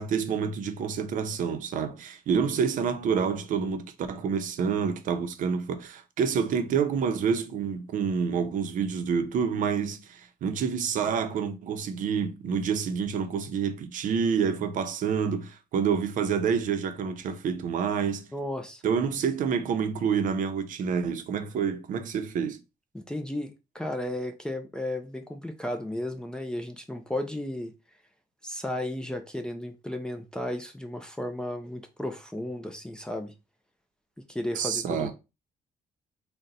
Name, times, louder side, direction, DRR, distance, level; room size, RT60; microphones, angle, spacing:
voice 1, 0.0-18.2 18.8-22.6 34.6-35.1, right 6 dB, 65° right, 0.6 m, -28 dB
voice 2, 18.3-18.8 22.9-27.7 28.4-33.3 34.3-35.1, left 1 dB, 5° left, 0.4 m, -34 dB
3.8 x 2.2 x 4.0 m
cardioid pair, 135°, 15 cm